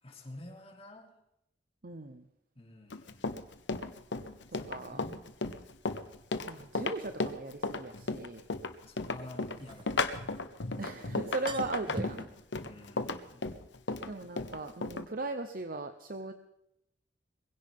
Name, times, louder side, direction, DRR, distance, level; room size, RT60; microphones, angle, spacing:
voice 1, 0.0-1.1 2.5-3.3 4.5-5.2 8.8-10.5 12.6-13.4, left 1 dB, 30° left, 1 dB, 3.0 m, -50 dB
voice 2, 1.8-2.2 4.7-5.0 6.5-8.4 10.8-12.2 14.1-16.3, right 2 dB, 50° right, 7 dB, 0.9 m, -38 dB
Run, 2.9-15.1, left 3 dB, 75° left, 1.1 m, -34 dB
sound 1, 6.9-7.0 9.3-10.6 10.9-11.0 11.3-12.3, right 1 dB, 25° right, 1.1 m, -42 dB
21.5 x 16.5 x 3.7 m, 0.82 s
head